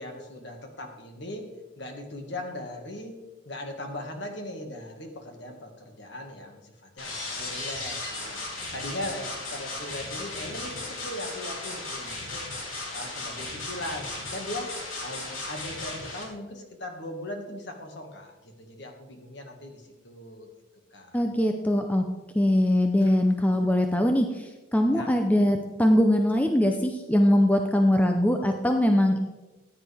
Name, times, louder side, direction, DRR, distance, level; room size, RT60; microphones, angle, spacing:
voice 1, 0.0-1.5 1.8-3.2 3.5-8.4 8.7-12.4 12.9-20.5 20.9-21.2 23.0-23.2 24.9-25.1, left 1 dB, 55° left, 3 dB, 1.8 m, -39 dB
sound 1, 7.0-16.2, left 2 dB, 85° left, 3.2 m, -36 dB
voice 2, 21.1-22.0 22.3-29.2, left 1 dB, 5° left, 4 dB, 0.5 m, -22 dB
14.5 x 9.5 x 3.4 m, 1.1 s
head